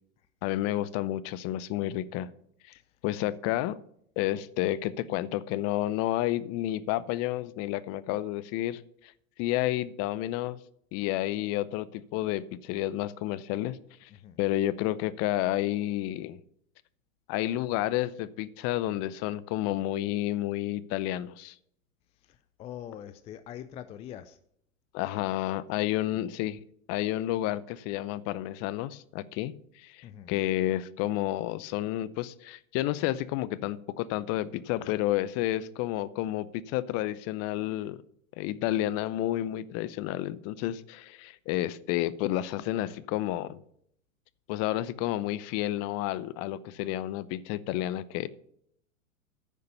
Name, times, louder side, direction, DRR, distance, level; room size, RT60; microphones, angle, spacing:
voice 1, 0.4-2.3 2.7-2.8 3.0-3.8 4.2-9.1 9.4-10.6 10.9-14.1 14.4-16.4 17.3-21.6 24.9-26.6 26.9-38.0 38.4-43.6 44.5-48.3, left 14 dB, 40° left, 18 dB, 0.7 m, -30 dB
voice 2, 22.2-24.4 30.0-30.3, left 10 dB, 15° left, 13 dB, 0.3 m, -44 dB
10.0 x 6.7 x 6.7 m, 0.68 s
hypercardioid pair, 100°, 41 cm